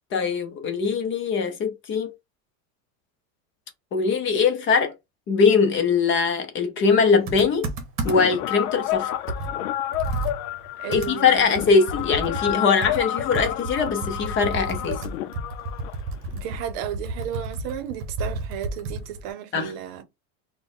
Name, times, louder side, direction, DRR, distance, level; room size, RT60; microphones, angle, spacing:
voice 1, 0.1-2.1 3.9-4.9 5.3-7.7 8.0-9.1 10.9-15.0 19.5-19.7, left 5 dB, 30° left, 0.7 m, -21 dB
Computer keyboard, 7.3-8.4 8.9-9.0 9.3-12.6 12.8-19.3, right 2 dB, 30° right, 1.0 m, -32 dB
sound 1, 8.1-16.6, left 12 dB, 90° left, 0.6 m, -30 dB
voice 2, 10.8-11.6 16.3-20.1, right 10 dB, 55° right, 0.8 m, -34 dB
4.1 x 2.3 x 3.7 m
supercardioid pair, 150°, 42 cm